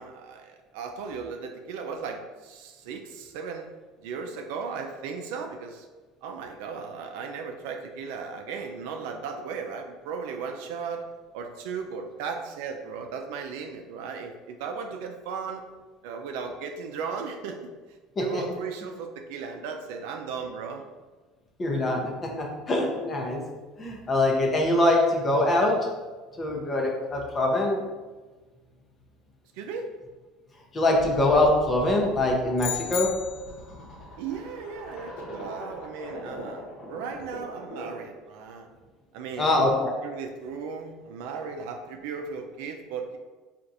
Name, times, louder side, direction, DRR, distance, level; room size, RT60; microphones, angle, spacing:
voice 1, 0.0-3.7 4.0-5.9 6.2-11.1 11.3-15.6 16.0-17.7 18.2-20.8 29.5-29.9 34.2-38.7 39.1-39.8 40.0-43.2, right 5 dB, 80° right, 4 dB, 0.4 m, -36 dB
voice 2, 21.6-23.4 23.8-25.9 26.4-27.8 30.7-33.2 39.4-39.9, left 1 dB, 25° left, 0 dB, 0.7 m, -23 dB
sound 1, 31.0-38.1, left 1 dB, 45° left, 1.0 m, -42 dB
sound 2, 32.6-33.7, left 11 dB, 75° left, 0.4 m, -33 dB
4.4 x 2.4 x 2.6 m, 1.3 s
cardioid pair, 125°, 0 cm